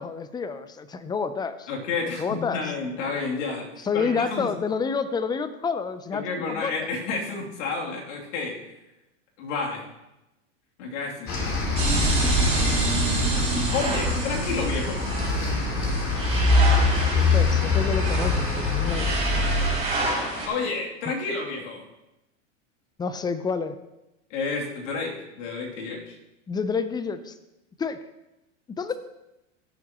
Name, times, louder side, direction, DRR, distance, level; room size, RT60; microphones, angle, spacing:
voice 1, 0.0-1.7 2.2-2.6 3.8-6.9 16.6-19.2 23.0-23.8 26.5-27.3 27.8-28.0 28.7-28.9, left 5 dB, 10° left, 12 dB, 0.5 m, -29 dB
voice 2, 1.7-4.5 6.1-8.6 9.4-9.8 10.8-11.5 12.4-12.7 13.7-15.0 20.5-21.8 24.3-26.2, left 4 dB, 70° left, -2 dB, 3.0 m, -30 dB
sound 1, 11.3-19.7, left 3 dB, 35° left, 3.1 m, -24 dB
sound 2, 11.7-20.5, right 2 dB, 15° right, 3.8 m, -27 dB
16.5 x 7.2 x 3.0 m, 0.95 s
supercardioid pair, 115°, 38 cm